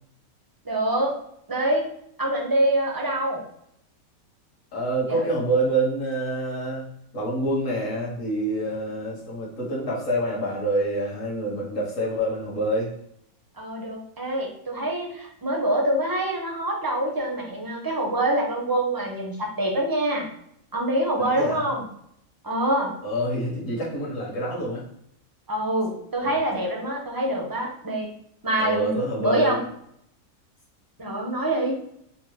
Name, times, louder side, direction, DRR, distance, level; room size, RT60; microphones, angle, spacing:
voice 1, 0.6-1.2 1.5-1.9 2.2-3.4 5.1-5.3 13.6-20.3 20.7-21.9 22.4-22.9 25.5-28.1 28.4-29.6 31.0-31.7, right 1 dB, 25° right, -1 dB, 0.5 m, -25 dB
voice 2, 4.7-6.9 7.1-12.9 21.2-21.7 23.0-24.8 26.2-26.4 28.6-29.6, right 1 dB, 60° left, -4 dB, 1.7 m, -27 dB
4.4 x 2.0 x 4.6 m, 0.71 s
omnidirectional pair, 1.5 m